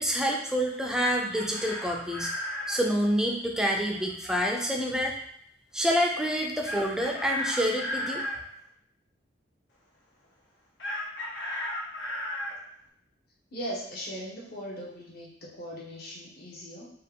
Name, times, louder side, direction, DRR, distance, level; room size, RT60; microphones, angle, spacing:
voice 1, 0.0-2.3 2.7-5.1 5.7-8.2, equal, 5° right, 1 dB, 0.4 m, -27 dB
Chicken rooster, 0.7-2.8 6.6-8.4 10.8-12.6, left 1 dB, 75° left, 1.0 m, -34 dB
voice 2, 13.5-16.9, equal, 55° left, -4 dB, 1.2 m, -39 dB
4.2 x 2.4 x 3.6 m, 0.67 s
head